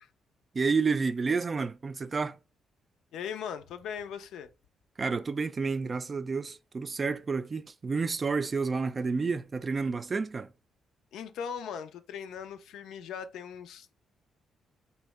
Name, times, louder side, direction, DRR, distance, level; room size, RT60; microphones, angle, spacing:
voice 1, 0.5-2.4 5.0-10.5, right 4 dB, 40° right, 0.3 m, -30 dB
voice 2, 3.1-4.5 11.1-13.9, left 7 dB, 80° left, 0.3 m, -39 dB
2.8 x 2.0 x 3.2 m
supercardioid pair, 60°, 0 cm